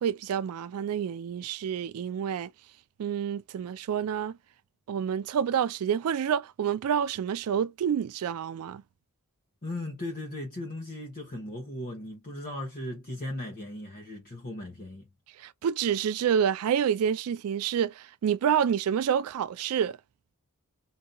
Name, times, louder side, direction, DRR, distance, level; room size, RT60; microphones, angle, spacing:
voice 1, 0.0-2.5 3.0-4.4 4.9-8.8 15.4-20.0, right 8 dB, 75° right, 0.3 m, -28 dB
voice 2, 9.6-15.1, left 1 dB, 40° left, 1.1 m, -37 dB
4.0 x 2.6 x 3.8 m
head